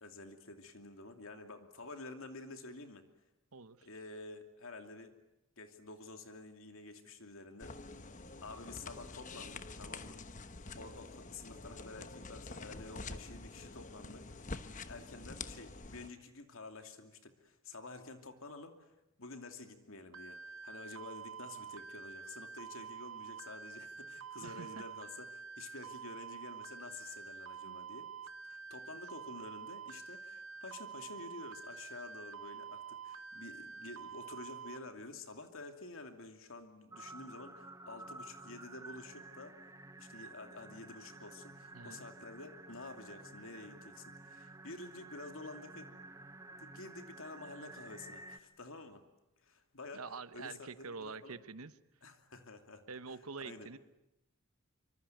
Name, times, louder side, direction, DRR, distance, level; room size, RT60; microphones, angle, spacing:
voice 1, 0.0-3.0 3.8-5.1 5.6-7.8 8.4-10.2 10.8-14.5 14.9-18.9 19.2-28.1 28.4-39.6 40.0-45.9 46.5-49.0 49.4-50.0 50.3-51.4 52.0-53.7, left 3 dB, 65° left, 6 dB, 2.7 m, -50 dB
voice 2, 3.5-3.9 24.4-24.8 27.6-27.8 41.7-42.0 49.9-51.7 52.9-53.8, right 4 dB, 85° right, 13 dB, 1.1 m, -46 dB
sound 1, 7.6-16.1, left 3 dB, 35° left, 1.1 m, -47 dB
sound 2, 20.1-34.8, right 6 dB, 60° right, 1.1 m, -48 dB
sound 3, 36.9-48.4, right 2 dB, 15° right, 1.1 m, -52 dB
25.5 x 25.0 x 9.2 m, 0.88 s
head